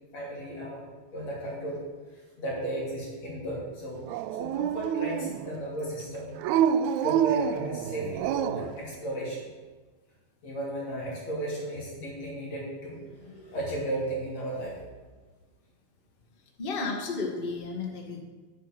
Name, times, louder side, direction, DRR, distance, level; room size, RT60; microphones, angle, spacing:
voice 1, 0.1-0.8 1.1-1.8 2.1-4.1 4.4-6.4 7.0-9.5 10.4-14.9, right 1 dB, 55° left, -5 dB, 4.1 m, -35 dB
Dog, 4.1-5.6 6.4-8.8, right 9 dB, 80° right, 1.7 m, -27 dB
voice 2, 16.6-18.2, left 4 dB, 25° left, -1 dB, 1.3 m, -32 dB
10.5 x 8.5 x 6.1 m, 1.3 s
omnidirectional pair, 3.8 m